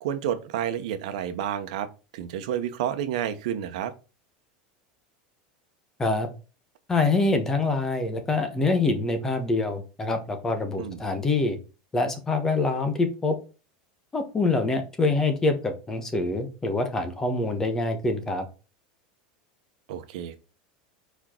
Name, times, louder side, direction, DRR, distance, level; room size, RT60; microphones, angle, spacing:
voice 1, 0.0-3.9 10.8-11.0 19.9-20.4, right 10 dB, 70° right, 10 dB, 1.0 m, -30 dB
voice 2, 6.9-11.6 11.9-13.4 14.1-18.5, left 3 dB, 10° left, 7 dB, 1.0 m, -25 dB
4.8 x 4.5 x 4.4 m, 0.33 s
supercardioid pair, 170°, 4 cm